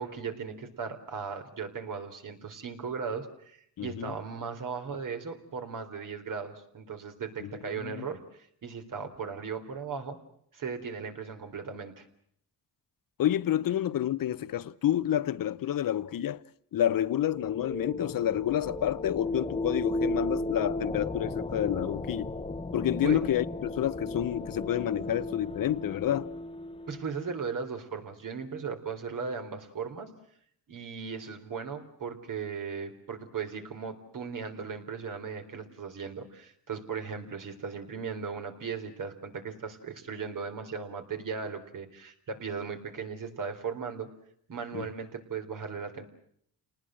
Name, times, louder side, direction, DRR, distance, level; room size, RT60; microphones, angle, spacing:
voice 1, 0.0-10.2 10.5-12.1 23.0-23.2 26.9-30.1 30.7-44.1 44.5-46.1, right 5 dB, 60° right, 3.9 m, -37 dB
voice 2, 3.8-4.1 7.4-8.1 13.2-16.4 16.7-22.3 22.7-26.3 44.7-44.9, left 11 dB, 65° left, 1.0 m, -29 dB
sound 1, 16.8-27.4, left 2 dB, 15° left, 1.1 m, -35 dB
29.5 x 19.5 x 7.8 m
cardioid pair, 110°, 36 cm